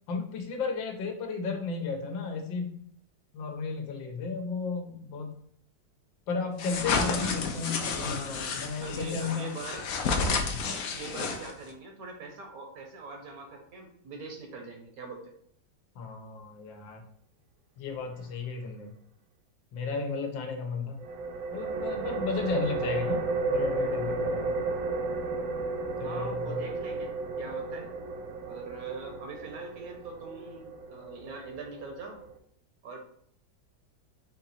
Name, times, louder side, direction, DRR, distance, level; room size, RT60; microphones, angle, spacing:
voice 1, 0.1-2.7 3.3-5.3 6.3-9.5 16.0-17.0 17.8-18.9 19.7-21.0 21.5-23.2 23.5-24.5 26.0-26.6, left 4 dB, 85° left, 3 dB, 1.6 m, -34 dB
sound 1, 6.6-11.7, left 4 dB, 70° left, 0.8 m, -31 dB
voice 2, 6.8-7.4 8.3-9.9 10.8-15.3 26.0-27.9 28.5-32.2 32.8-33.0, right 3 dB, 60° right, 2 dB, 1.1 m, -42 dB
sound 2, 21.0-32.4, right 3 dB, 80° right, 0.7 m, -33 dB
4.5 x 2.9 x 4.1 m, 0.67 s
omnidirectional pair, 2.0 m